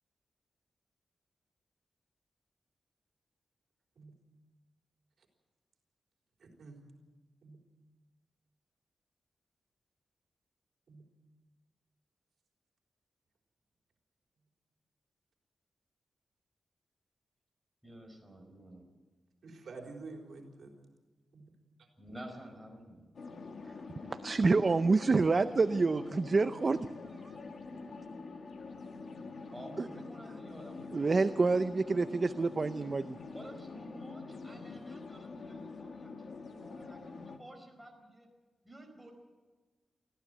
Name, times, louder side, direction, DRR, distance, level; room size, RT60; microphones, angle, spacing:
voice 1, 6.4-6.8 7.4-7.6 10.9-11.0 19.4-20.7 21.3-21.4, right 3 dB, 70° right, 2 dB, 4.0 m, -48 dB
voice 2, 17.8-18.9 22.0-23.1 29.5-31.2 32.4-32.7 33.3-38.3 38.6-39.1, right 1 dB, 5° right, 1 dB, 4.8 m, -51 dB
sound 1, 23.1-37.4, left 4 dB, 60° left, 1.9 m, -46 dB
voice 3, 24.0-26.9 29.8-29.9 30.9-33.2, right 3 dB, 35° right, 11 dB, 0.5 m, -28 dB
24.0 x 15.0 x 7.8 m, 1.3 s
wide cardioid pair, 150°, 0 cm